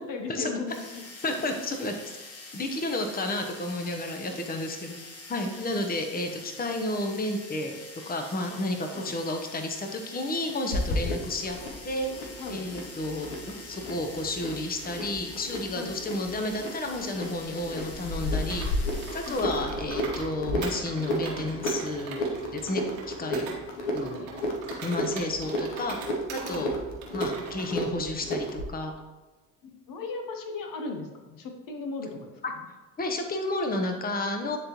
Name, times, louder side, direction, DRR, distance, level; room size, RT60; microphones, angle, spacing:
voice 1, 0.0-1.0 8.9-9.1 10.9-11.0 12.4-12.7 15.7-15.9 19.3-19.7 26.5-26.7 29.6-32.7, left 3 dB, 60° left, 4 dB, 1.0 m, -37 dB
sound 1, 0.7-19.6, left 3 dB, 40° left, 1.3 m, -45 dB
voice 2, 1.2-2.0 2.5-5.0 5.3-7.8 8.1-11.6 11.8-12.1 12.5-23.5 23.9-24.3 24.8-26.0 26.3-26.7 27.1-28.9 32.4-32.5 33.0-34.6, left 2 dB, 25° left, 4 dB, 0.9 m, -31 dB
sound 2, 10.7-28.7, left 1 dB, 80° left, 1.1 m, -33 dB
Computer keyboard, 18.5-20.3 20.6-23.6 24.0-26.6 27.0-27.7, right 4 dB, 85° right, 1.4 m, -41 dB
9.5 x 3.7 x 3.0 m, 1.2 s
hypercardioid pair, 55°, 38 cm